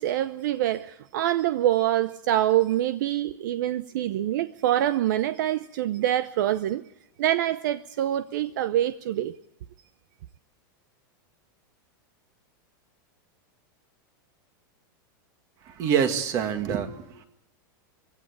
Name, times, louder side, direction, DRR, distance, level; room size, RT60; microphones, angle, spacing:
voice 1, 0.0-6.8 7.2-9.3, right 12 dB, 60° right, 0.7 m, -25 dB
voice 2, 15.6-17.2, right 8 dB, 30° right, 1.8 m, -26 dB
23.0 x 16.5 x 8.7 m
supercardioid pair, 170°, 11 cm